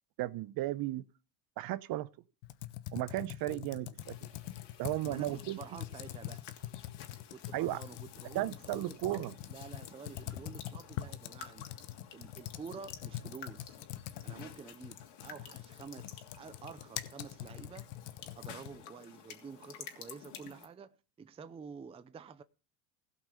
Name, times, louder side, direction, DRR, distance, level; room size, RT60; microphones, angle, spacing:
voice 1, 0.2-1.0 1.6-2.1 2.9-4.3 4.8-5.6 7.5-7.8 8.3-9.3, right 15 dB, 45° right, 0.8 m, -35 dB
Computer keyboard, 2.4-18.9, left 14 dB, 75° left, 1.2 m, -44 dB
sound 1, 4.0-20.7, left 8 dB, 55° left, 2.9 m, -52 dB
voice 2, 5.0-6.4 7.3-11.7 12.1-13.8 14.2-17.9 18.4-22.4, right 6 dB, 10° right, 0.5 m, -49 dB
16.5 x 5.7 x 7.6 m
supercardioid pair, 125°, 49 cm